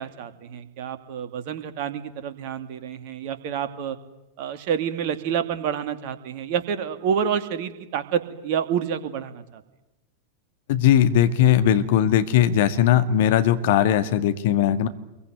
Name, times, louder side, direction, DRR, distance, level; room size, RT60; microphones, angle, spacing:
voice 1, 0.0-4.0 4.4-9.6, right 8 dB, 45° right, 9 dB, 2.6 m, -28 dB
voice 2, 10.7-14.9, left 10 dB, 55° left, 9 dB, 2.0 m, -19 dB
28.0 x 22.5 x 9.5 m, 0.98 s
figure-of-eight pair, 90°, 0 cm